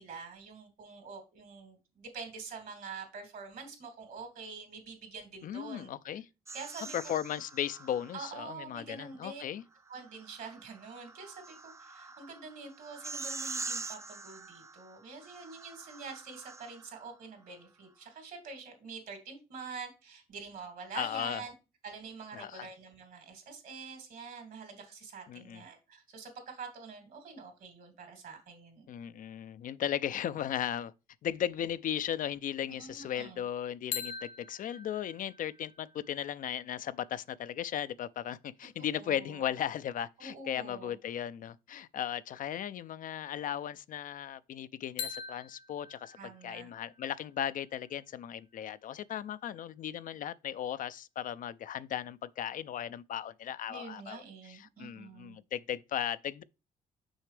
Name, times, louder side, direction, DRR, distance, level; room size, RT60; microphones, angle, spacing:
voice 1, 0.0-5.9 6.5-7.1 8.1-9.4 9.9-21.5 21.8-28.9 32.7-33.4 39.0-39.5 40.2-41.0 46.2-46.7 53.7-55.4, right 5 dB, 70° right, 2.9 m, -46 dB
voice 2, 5.4-6.2 6.9-9.6 20.9-21.4 22.3-22.7 25.3-25.6 28.9-30.9 31.2-56.4, left 10 dB, 60° left, 0.4 m, -36 dB
sound 1, 6.5-8.4 9.9-17.1, right 3 dB, 20° right, 0.4 m, -44 dB
sound 2, 33.9-37.8 45.0-48.8, left 7 dB, 80° left, 1.0 m, -45 dB
6.3 x 5.7 x 3.3 m
supercardioid pair, 65°, 16 cm